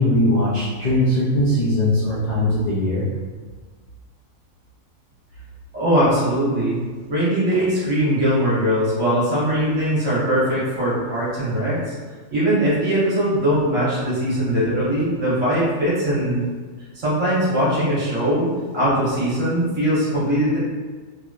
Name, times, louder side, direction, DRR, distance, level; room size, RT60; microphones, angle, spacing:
voice 1, 0.0-3.0, left 1 dB, 75° left, -7 dB, 0.4 m, -20 dB
voice 2, 5.7-6.8 7.1-11.9 12.3-16.4 16.9-20.6, equal, 60° right, -9 dB, 1.6 m, -21 dB
3.2 x 2.8 x 2.4 m, 1.5 s
omnidirectional pair, 1.4 m